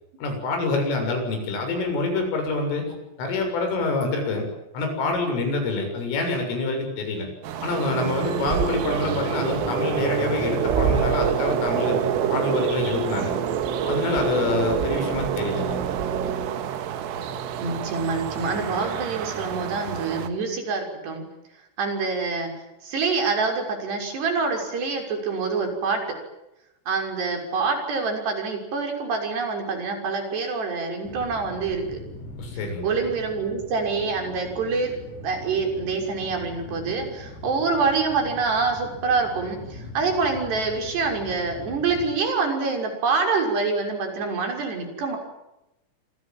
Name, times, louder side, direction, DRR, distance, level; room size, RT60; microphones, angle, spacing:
voice 1, 0.2-2.8 3.2-4.5 4.7-7.3 7.6-12.0 12.3-13.3 13.8-15.8 32.4-32.9, left 3 dB, 75° left, 4 dB, 9.7 m, -26 dB
sound 1, 7.4-20.3, right 8 dB, 80° right, 4.6 m, -27 dB
Female singing, 7.8-14.9, right 1 dB, ahead, 4.0 m, -41 dB
voice 2, 17.6-21.2 21.8-22.5 22.8-26.0 26.9-32.0 32.8-35.0 35.2-45.2, right 4 dB, 55° right, 4 dB, 8.2 m, -26 dB
sound 2, 31.0-42.1, left 2 dB, 55° left, 7.3 m, -41 dB
28.0 x 26.0 x 7.8 m, 0.91 s
omnidirectional pair, 5.8 m